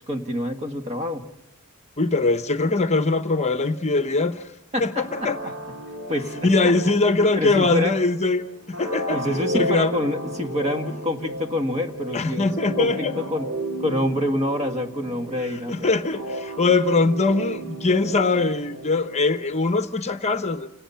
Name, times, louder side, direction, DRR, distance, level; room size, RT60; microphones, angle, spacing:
voice 1, 0.1-1.2 4.7-5.1 5.4-5.5 6.1-6.8 7.4-7.9 9.1-13.5 13.8-15.7, left 1 dB, 30° right, 5 dB, 1.8 m, -27 dB
voice 2, 2.0-4.5 4.8-5.4 6.4-9.3 9.5-9.9 12.1-13.2 15.4-20.7, left 3 dB, 30° left, 9 dB, 0.9 m, -22 dB
sound 1, 5.0-19.6, equal, 80° right, 3.8 m, -34 dB
29.0 x 18.0 x 5.7 m, 0.88 s
head